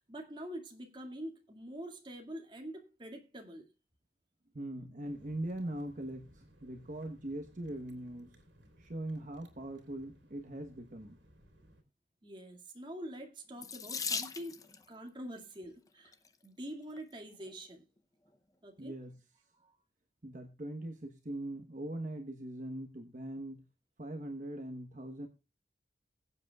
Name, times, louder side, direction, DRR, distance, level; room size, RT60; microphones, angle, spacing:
voice 1, 0.1-3.6 12.2-16.1 16.4-17.8 18.6-18.9 19.6-19.8, right 1 dB, 25° right, 2.1 m, -45 dB
voice 2, 4.5-8.4 8.8-11.2 18.8-19.2 20.2-23.7 24.0-25.3, right 1 dB, 45° right, 1.1 m, -41 dB
sound 1, 5.0-11.8, equal, 85° right, 3.2 m, -62 dB
Water tap faucet / Sink (filling or washing), 13.6-14.8 15.9-16.3 17.0-17.1 17.4-17.5, left 5 dB, 20° left, 0.6 m, -38 dB
22.0 x 7.9 x 2.3 m
head